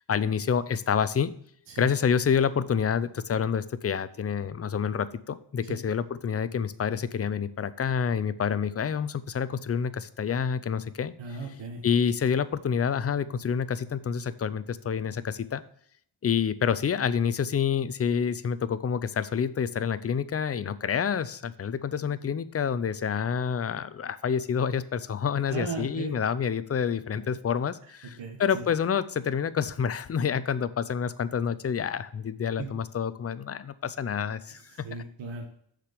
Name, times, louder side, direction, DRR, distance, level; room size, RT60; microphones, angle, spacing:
voice 1, 0.0-1.3 1.8-11.1 11.8-15.6 16.2-34.9, left 7 dB, 30° left, 14 dB, 0.6 m, -28 dB
voice 2, 11.2-11.8 25.5-26.1 27.1-27.2 28.0-28.7 32.6-32.7 34.7-35.5, right 4 dB, 70° right, 1 dB, 1.6 m, -37 dB
6.6 x 5.0 x 6.7 m, 0.65 s
cardioid pair, 105°, 45 cm